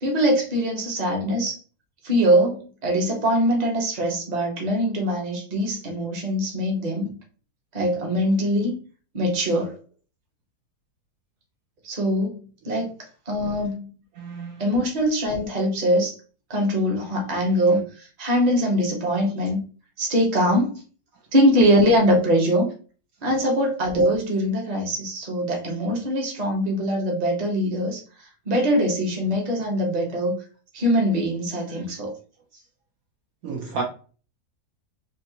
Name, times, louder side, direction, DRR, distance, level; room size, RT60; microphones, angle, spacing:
voice 1, 0.0-1.6 2.0-7.2 7.7-8.7 9.1-9.7 11.8-12.9 13.3-13.9 14.6-16.1 16.5-19.6 20.0-20.8 21.3-22.7 23.2-28.0 28.5-30.3 30.7-32.1, equal, 30° right, 0.9 m, -22 dB
voice 2, 14.2-14.6 31.7-31.9 32.5-32.6 33.4-33.8, right 4 dB, 70° right, 1.0 m, -32 dB
3.6 x 2.6 x 2.7 m
omnidirectional pair, 1.7 m